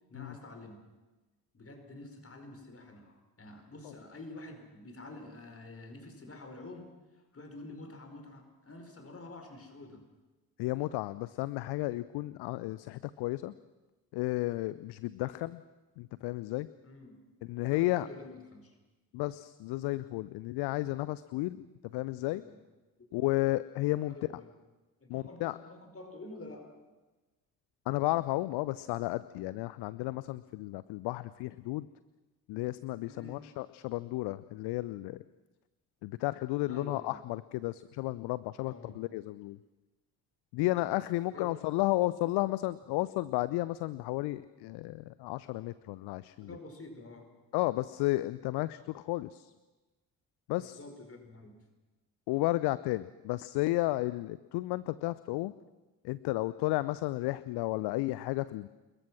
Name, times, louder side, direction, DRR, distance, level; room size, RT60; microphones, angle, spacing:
voice 1, 0.1-0.8 1.5-10.0 15.2-15.3 16.8-17.2 17.6-18.7 22.3-22.6 23.0-23.3 24.1-24.5 25.0-26.7 33.1-33.6 36.7-37.2 38.6-38.9 41.3-41.5 46.4-47.3 50.6-51.6, left 2 dB, 30° left, 5 dB, 5.0 m, -48 dB
voice 2, 10.6-13.5 14.1-15.6 16.0-16.7 17.5-18.1 19.1-21.7 21.9-22.4 23.1-24.1 25.1-25.6 27.9-31.9 32.5-35.2 36.0-39.6 40.5-46.5 47.5-49.5 50.5-50.8 52.3-55.5 56.0-58.7, left 18 dB, 55° left, 17 dB, 0.7 m, -33 dB
27.0 x 21.5 x 6.2 m, 1.1 s
figure-of-eight pair, 40°, 47 cm